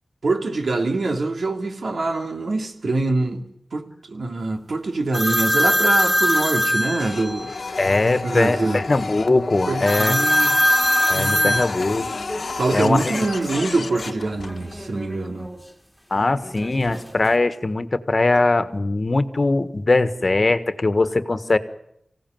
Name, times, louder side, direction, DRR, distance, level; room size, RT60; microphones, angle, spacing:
voice 1, 0.2-7.5 8.2-8.8 9.7-10.5 11.1-11.6 12.5-15.5, right 2 dB, 75° right, 2.8 m, -24 dB
sound 1, 5.1-7.6 9.9-14.1 14.4-15.6 16.4-17.3, equal, 5° left, 2.7 m, -23 dB
Printer, 7.0-14.8, left 4 dB, 70° left, 1.2 m, -31 dB
voice 2, 7.8-10.1 11.1-12.1 12.7-13.3 16.1-21.6, left 2 dB, 45° left, 1.5 m, -21 dB
25.5 x 16.5 x 9.3 m
wide cardioid pair, 70°, 0 cm